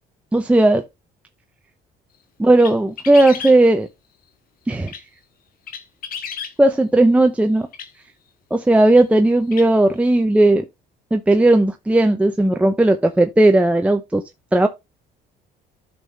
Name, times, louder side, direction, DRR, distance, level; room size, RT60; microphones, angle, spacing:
voice 1, 0.3-0.8 2.4-3.9 4.7-4.9 6.6-7.7 8.5-10.6 11.1-14.2 14.5-14.7, right 2 dB, 5° right, 0.7 m, -15 dB
sound 1, 2.6-3.6 4.7-5.0 5.7-6.5 7.7-7.9 8.9-9.0 9.5-9.7, left 7 dB, 60° left, 1.6 m, -33 dB
12.5 x 5.6 x 3.2 m
cardioid pair, 110°, 17 cm